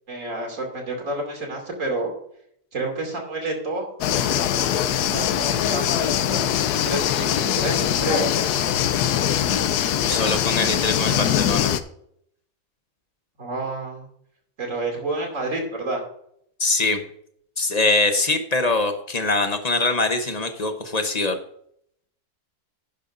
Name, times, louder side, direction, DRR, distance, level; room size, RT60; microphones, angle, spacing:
voice 1, 0.1-2.1 2.7-3.9 5.1-8.5 13.4-14.1 14.6-16.0, right 2 dB, 55° right, 1 dB, 2.9 m, -29 dB
sound 1, 4.0-11.8, left 10 dB, 80° left, 1.2 m, -22 dB
voice 2, 10.1-11.7 16.6-17.0 17.6-21.4, left 2 dB, 35° left, 7 dB, 0.8 m, -23 dB
11.0 x 11.0 x 2.6 m, 0.69 s
omnidirectional pair, 1.7 m